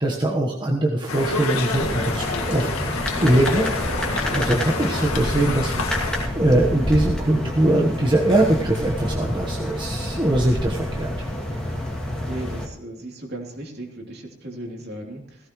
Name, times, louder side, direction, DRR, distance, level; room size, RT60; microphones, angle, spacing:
voice 1, 0.0-2.9 3.2-3.7 4.3-11.1, right 1 dB, 20° right, -1 dB, 1.2 m, -22 dB
Conversation, 1.1-6.3, left 3 dB, 90° left, 1.9 m, -28 dB
sound 1, 1.7-12.6, left 1 dB, 5° left, 2.5 m, -28 dB
voice 2, 12.2-15.5, right 1 dB, 50° right, 1 dB, 3.1 m, -36 dB
17.5 x 16.0 x 3.1 m, 0.66 s
head